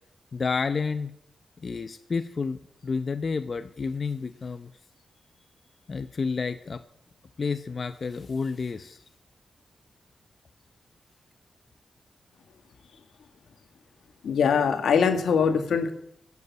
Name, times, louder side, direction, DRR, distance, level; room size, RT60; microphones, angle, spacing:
voice 1, 0.3-1.1 1.6-4.7 5.9-6.8 7.4-9.0, left 4 dB, 50° left, 10 dB, 0.8 m, -30 dB
voice 2, 14.2-15.9, left 6 dB, 90° left, 7 dB, 1.7 m, -22 dB
15.5 x 8.4 x 9.5 m, 0.73 s
cardioid pair, 70°, 0 cm